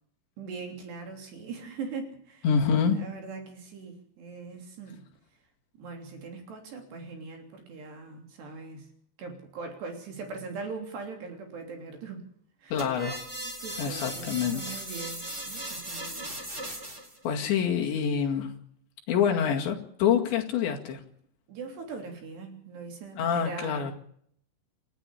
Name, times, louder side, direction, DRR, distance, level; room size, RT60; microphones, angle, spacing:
voice 1, 0.4-2.5 2.9-5.0 5.7-8.9 9.2-12.2 12.6-12.8 13.6-16.3 21.5-23.9, right 4 dB, 55° right, 4 dB, 5.0 m, -41 dB
voice 2, 2.4-3.0 12.7-13.2 13.8-14.8 17.2-18.5 19.1-21.0 23.2-23.9, left 7 dB, 65° left, 2 dB, 4.2 m, -26 dB
sound 1, 12.8-17.2, right 1 dB, 15° right, 3.7 m, -37 dB
28.5 x 10.0 x 10.0 m, 0.64 s
omnidirectional pair, 5.9 m